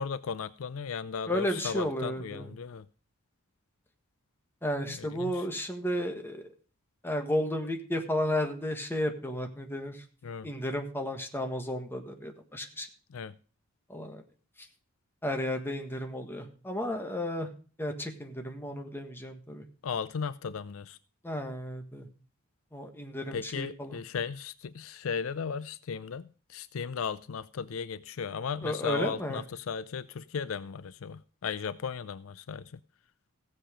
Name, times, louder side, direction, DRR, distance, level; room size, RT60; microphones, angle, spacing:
voice 1, 0.0-2.9 4.9-5.5 10.2-10.5 13.1-13.3 19.8-21.0 23.3-32.8, left 6 dB, 70° left, 0.5 m, -36 dB
voice 2, 1.3-2.5 4.6-6.4 7.0-10.0 10.4-12.9 13.9-14.2 15.2-17.5 17.8-19.6 21.2-22.1 22.7-24.0 28.6-29.4, left 1 dB, 10° left, 1.4 m, -33 dB
16.0 x 7.4 x 5.0 m
head